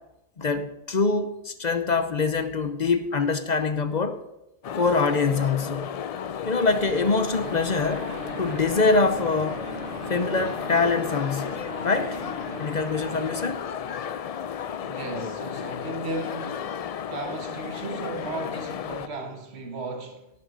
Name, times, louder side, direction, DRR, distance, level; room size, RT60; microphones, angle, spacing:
voice 1, 0.4-4.2 4.7-5.9 6.4-8.1 8.4-9.6 10.1-12.2 12.6-13.6, left 4 dB, 45° left, 0.8 m, -24 dB
sound 1, 4.6-19.1, left 8 dB, 65° left, 0.3 m, -34 dB
sound 2, 6.7-13.5, right 2 dB, 55° right, 1.3 m, -39 dB
voice 2, 14.8-16.7 17.0-20.3, right 2 dB, 70° right, 1.6 m, -35 dB
17.5 x 8.3 x 3.9 m
omnidirectional pair, 1.1 m